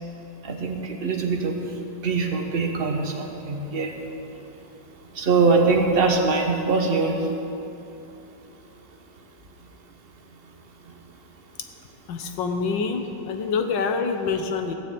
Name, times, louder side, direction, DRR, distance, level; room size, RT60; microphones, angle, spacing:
voice 1, 0.4-1.5 2.0-3.9 5.1-7.3, right 4 dB, 35° right, 2 dB, 1.3 m, -22 dB
voice 2, 12.1-14.7, left 5 dB, 70° left, 6 dB, 1.6 m, -26 dB
15.0 x 6.8 x 8.5 m, 2.8 s
omnidirectional pair, 2.1 m